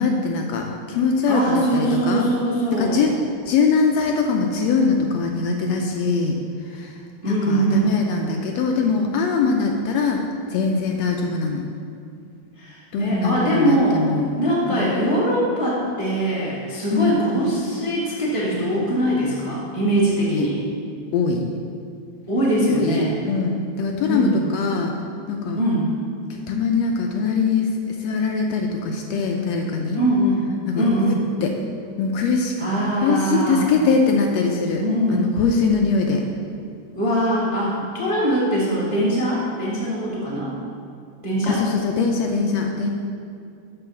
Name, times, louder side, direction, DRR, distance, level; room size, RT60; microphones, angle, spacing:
voice 1, 0.0-2.3 2.8-3.1 3.5-6.4 6.7-6.9 7.3-10.2 10.5-11.6 12.9-14.3 14.7-14.8 16.9-17.1 20.3-20.5 21.1-21.4 22.6-24.9 25.3-25.6 26.5-27.7 28.0-30.0 30.7-31.1 31.4-31.5 32.0-32.5 33.0-34.8 35.1-36.2 37.7-37.8 41.4-42.9, left 4 dB, 75° left, 2 dB, 1.6 m, -22 dB
voice 2, 1.3-3.0 7.2-7.9 12.6-14.0 14.4-20.6 22.3-23.2 24.1-24.4 25.5-25.9 29.9-30.4 30.7-31.2 32.6-33.7 34.8-35.3 36.9-40.5 41.2-41.6, right 1 dB, 25° right, -7 dB, 0.7 m, -22 dB
6.9 x 5.5 x 7.0 m, 2.4 s
omnidirectional pair, 3.3 m